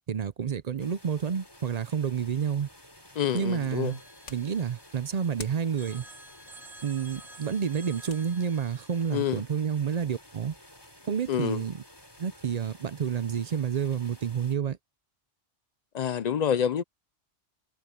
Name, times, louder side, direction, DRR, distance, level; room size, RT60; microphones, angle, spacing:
voice 1, 0.1-2.7 3.3-4.0 4.3-6.0 6.8-10.5 11.1-11.8 12.2-14.8, right 7 dB, 45° right, 0.5 m, -29 dB
sound 1, 0.8-14.6, left 1 dB, 20° left, 3.6 m, -53 dB
voice 2, 3.2-3.9 9.1-9.4 11.3-11.6 15.9-16.8, left 9 dB, 55° left, 0.4 m, -27 dB
paper flicked, 3.4-10.1, left 5 dB, 85° left, 1.7 m, -53 dB
Telephone, 3.9-5.3 5.8-9.1, right 1 dB, ahead, 2.6 m, -51 dB
omnidirectional pair, 1.2 m